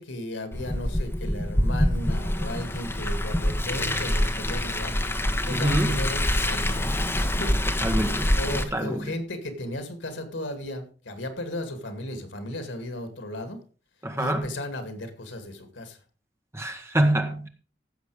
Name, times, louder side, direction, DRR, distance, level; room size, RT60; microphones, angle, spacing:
voice 1, 0.0-4.9 5.4-6.9 7.3-7.6 8.4-13.6 14.2-16.0, left 1 dB, 85° left, 8 dB, 2.4 m, -35 dB
Car, 0.5-8.6, left 1 dB, 15° left, 1.1 m, -26 dB
voice 2, 5.5-6.0 7.8-9.1 14.0-14.5 16.5-17.5, right 1 dB, 15° right, 5 dB, 1.4 m, -26 dB
15.5 x 7.1 x 4.9 m, 0.39 s
head